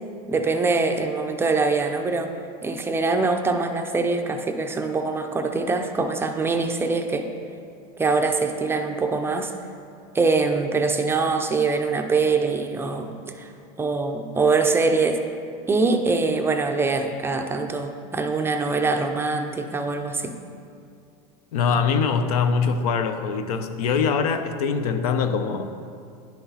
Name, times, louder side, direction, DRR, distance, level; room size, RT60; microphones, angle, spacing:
voice 1, 0.3-2.3 2.6-7.3 8.0-9.5 10.1-13.5 13.8-15.2 15.7-20.3, right 3 dB, 10° right, 5 dB, 0.4 m, -23 dB
voice 2, 21.5-25.7, left 5 dB, 90° left, 9 dB, 0.6 m, -23 dB
10.5 x 5.8 x 2.8 m, 2.4 s
supercardioid pair, 130°, 19 cm